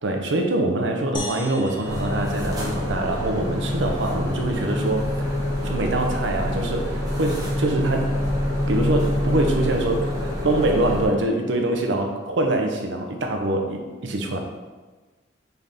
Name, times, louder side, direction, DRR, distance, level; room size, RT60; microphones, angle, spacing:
voice 1, 0.0-5.4 5.6-8.1 8.7-14.4, right 2 dB, 70° right, 3 dB, 0.6 m, -24 dB
sound 1, 1.1-3.6, left 1 dB, 25° left, 0.6 m, -38 dB
sound 2, 1.8-11.1, left 1 dB, 20° right, 0.9 m, -26 dB
4.0 x 3.4 x 3.7 m, 1.3 s
head